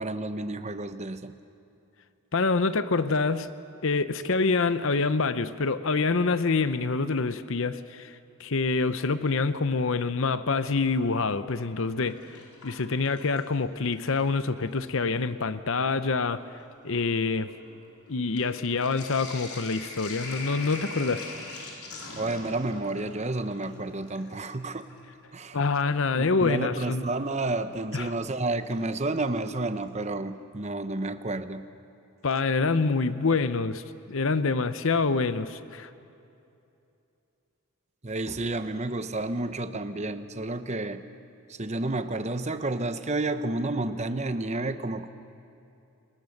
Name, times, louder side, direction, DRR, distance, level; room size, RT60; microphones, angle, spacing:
voice 1, 0.0-1.3 22.1-24.9 25.3-25.6 26.1-31.6 38.0-41.0 41.5-45.1, right 2 dB, 30° right, 10 dB, 0.9 m, -30 dB
voice 2, 2.3-3.5 3.8-8.1 8.4-16.4 16.8-17.5 18.1-21.3 25.5-27.1 27.9-28.1 32.2-33.8 34.1-35.9, left 4 dB, 60° left, 12 dB, 0.8 m, -26 dB
Sink (filling or washing), 11.6-13.6 13.9-14.7 15.5-15.6 15.9-25.0 26.8-26.9 28.7-29.2 29.5-29.6 29.8-29.9, left 3 dB, 85° left, 4.6 m, -43 dB
29.5 x 21.0 x 6.6 m, 2.7 s
head